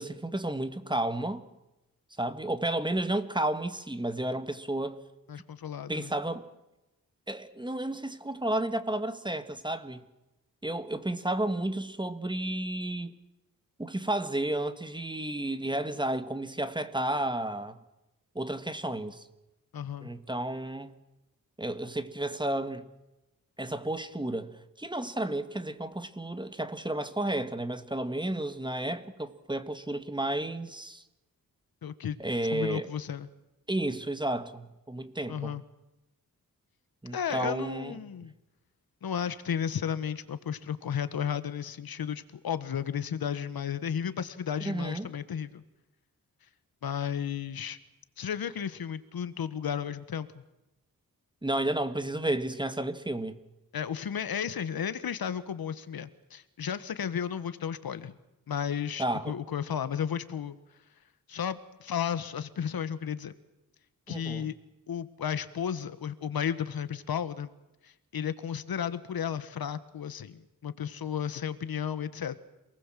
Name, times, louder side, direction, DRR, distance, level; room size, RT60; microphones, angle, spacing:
voice 1, 0.0-1.4 2.2-5.0 5.9-6.4 7.3-10.0 10.6-13.1 13.8-17.8 18.3-19.2 20.0-20.9 21.6-22.9 23.6-31.0 32.2-32.9 33.7-35.6 37.0-38.0 44.6-45.1 51.4-53.4 59.0-59.3 64.1-64.5, right 1 dB, 15° right, 1.7 m, -32 dB
voice 2, 5.3-6.1 19.7-20.1 31.8-32.2 32.5-33.3 35.3-35.6 37.1-38.3 39.0-45.6 46.8-47.8 48.2-50.4 53.7-58.1 58.5-60.6 61.3-63.3 64.1-64.5 64.9-67.5 67.8-72.4, left 8 dB, 90° left, 1.4 m, -33 dB
27.5 x 19.5 x 7.6 m
wide cardioid pair, 110°, 35 cm